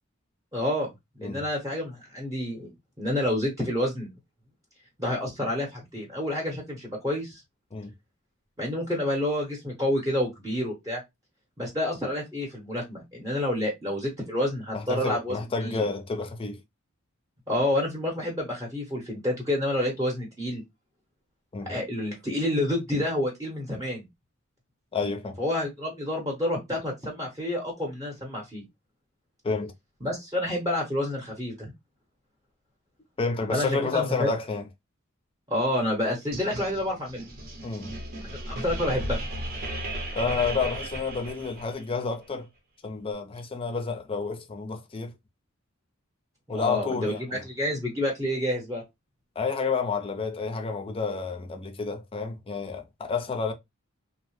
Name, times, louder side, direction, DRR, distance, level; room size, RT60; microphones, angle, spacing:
voice 1, 0.5-0.9 1.2-2.7 3.0-4.1 5.0-7.4 8.6-11.0 11.6-15.8 17.5-20.6 21.7-24.1 25.4-28.6 30.0-31.7 33.5-34.3 35.5-37.2 38.2-39.2 46.5-48.8, left 1 dB, 15° right, 0.8 m, -29 dB
voice 2, 14.7-16.6 21.5-21.7 24.9-25.4 29.4-29.7 33.2-34.6 37.6-37.9 40.1-42.5 42.8-45.1 46.5-47.4 49.4-53.5, left 4 dB, 25° left, 0.5 m, -30 dB
sound 1, 36.3-41.9, right 1 dB, 45° right, 0.7 m, -35 dB
2.7 x 2.0 x 2.9 m
head